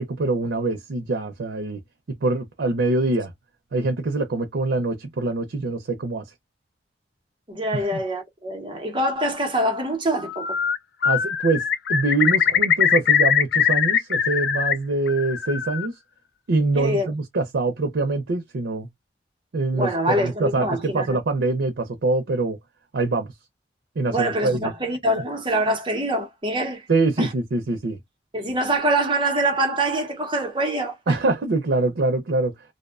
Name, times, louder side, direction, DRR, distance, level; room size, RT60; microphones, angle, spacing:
voice 1, 0.0-1.8 2.2-3.3 3.7-6.2 7.9-8.0 11.0-15.9 16.5-18.9 19.5-22.6 22.9-23.3 24.0-24.7 26.9-28.0 31.1-32.5, right 3 dB, 90° right, 0.5 m, -24 dB
voice 2, 7.5-10.6 16.8-17.1 19.7-21.2 24.1-26.9 27.2-27.3 28.3-31.2, right 1 dB, 30° right, 0.7 m, -24 dB
Bird, 10.2-10.8 11.0-14.7 15.1-15.9, left 8 dB, 70° left, 0.3 m, -21 dB
2.6 x 2.1 x 2.4 m
head